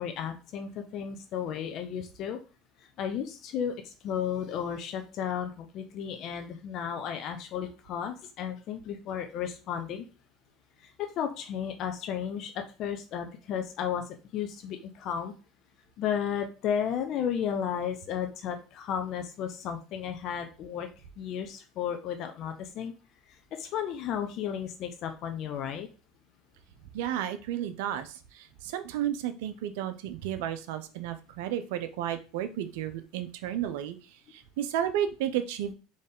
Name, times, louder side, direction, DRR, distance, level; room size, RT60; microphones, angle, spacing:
voice 1, 0.0-2.4 3.0-10.0 10.8-15.3 16.0-20.9 21.2-22.9 23.5-25.9, left 8 dB, 55° left, 6 dB, 0.6 m, -33 dB
voice 2, 26.9-35.7, right 10 dB, 75° right, 10 dB, 0.6 m, -33 dB
4.2 x 3.2 x 3.7 m, 0.34 s
hypercardioid pair, 85°, 0 cm